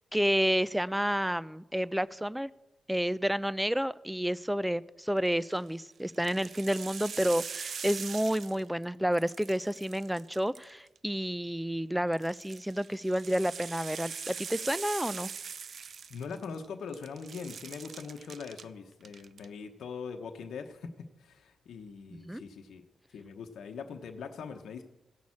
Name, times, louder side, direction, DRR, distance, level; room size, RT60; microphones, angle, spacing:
voice 1, 0.1-2.5 2.9-15.3 22.1-22.4, equal, 5° right, 19 dB, 0.6 m, -30 dB
sound 1, 5.3-5.6 6.1-8.8 9.1-11.0 12.1-16.7 16.9-18.6 19.0-19.5, right 6 dB, 65° right, 0.5 m, -42 dB
voice 2, 16.1-20.9 21.2-22.8 23.1-24.8, left 5 dB, 75° left, 4 dB, 1.0 m, -42 dB
16.0 x 6.2 x 8.6 m, 0.96 s
supercardioid pair, 45°, 0 cm